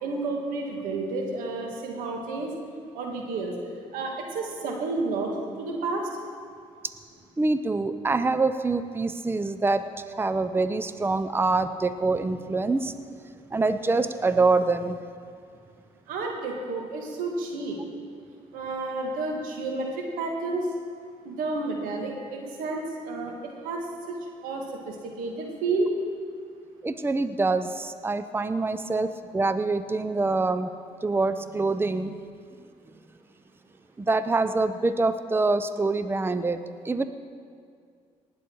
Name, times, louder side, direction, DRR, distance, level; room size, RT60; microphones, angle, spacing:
voice 1, 0.0-2.5 2.9-3.5 3.9-5.3 5.6-6.1 16.1-17.8 18.5-20.7 21.2-24.2 24.4-25.9, right 3 dB, 85° right, 1 dB, 1.9 m, -31 dB
voice 2, 7.4-9.9 10.1-12.9 13.5-15.0 26.8-30.7 31.0-32.2 34.0-37.0, right 3 dB, 15° right, 11 dB, 0.6 m, -25 dB
19.0 x 8.7 x 4.7 m, 2.2 s
supercardioid pair, 60°, 14 cm